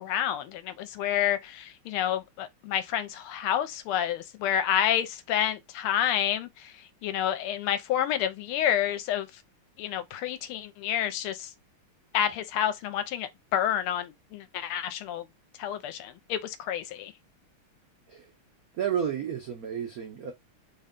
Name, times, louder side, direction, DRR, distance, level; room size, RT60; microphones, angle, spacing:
voice 1, 0.0-6.5 7.0-9.3 9.8-11.5 12.1-15.2 15.6-17.1, left 10 dB, 80° left, 1.5 m, -29 dB
voice 2, 18.7-20.3, right 8 dB, 85° right, 0.7 m, -31 dB
3.8 x 2.2 x 3.6 m
omnidirectional pair, 2.4 m